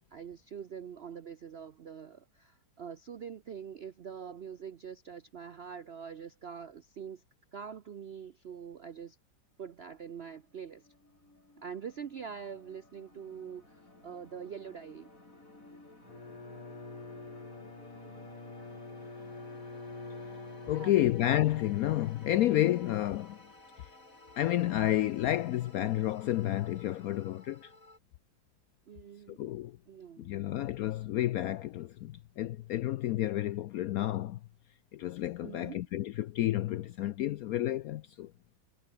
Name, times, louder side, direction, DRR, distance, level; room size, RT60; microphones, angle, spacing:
voice 1, 0.1-7.2 7.5-9.2 9.6-10.9 11.6-15.1 20.7-21.1 28.9-29.4 29.9-30.7 35.4-35.9, right 7 dB, 65° right, 0.6 m, -44 dB
sound 1, 9.6-28.0, left 2 dB, 45° left, 6.6 m, -56 dB
Bowed string instrument, 16.0-21.5, left 3 dB, 20° left, 1.7 m, -46 dB
voice 2, 20.7-23.4 24.4-27.7 29.4-29.7 30.2-34.4 34.9-38.3, left 13 dB, 75° left, 0.8 m, -30 dB
omnidirectional pair, 2.0 m